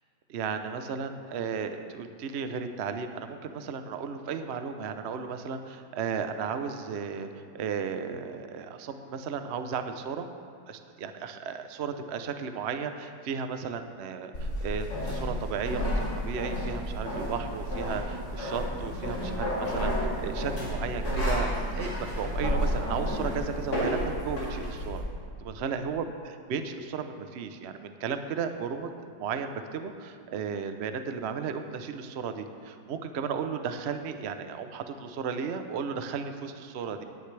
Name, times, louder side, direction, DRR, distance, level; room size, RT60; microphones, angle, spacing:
voice 1, 0.3-10.3 10.7-25.0 25.4-28.9 29.2-37.0, right 6 dB, 70° right, 8 dB, 0.6 m, -34 dB
sound 1, 14.3-25.0, equal, 55° left, 3.5 m, -31 dB
18.5 x 10.0 x 3.3 m, 2.1 s
omnidirectional pair, 2.0 m